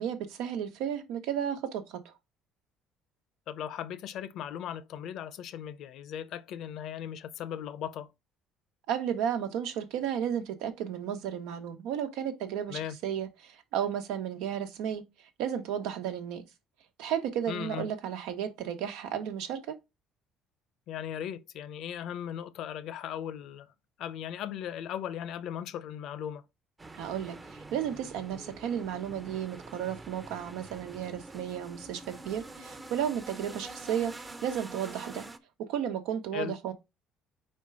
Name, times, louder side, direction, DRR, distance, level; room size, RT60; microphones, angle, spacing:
voice 1, 0.0-2.1 8.9-15.0 15.4-16.4 17.0-19.8 26.9-34.1 34.4-35.3 35.6-36.7, right 9 dB, 85° right, 1.2 m, -33 dB
voice 2, 3.5-8.1 12.7-13.0 17.5-17.9 20.9-23.7 24.0-26.4 36.3-36.6, left 9 dB, 65° left, 0.6 m, -38 dB
sound 1, 26.8-35.4, right 2 dB, 20° right, 0.7 m, -46 dB
4.5 x 4.4 x 4.8 m
cardioid pair, 110°, 0 cm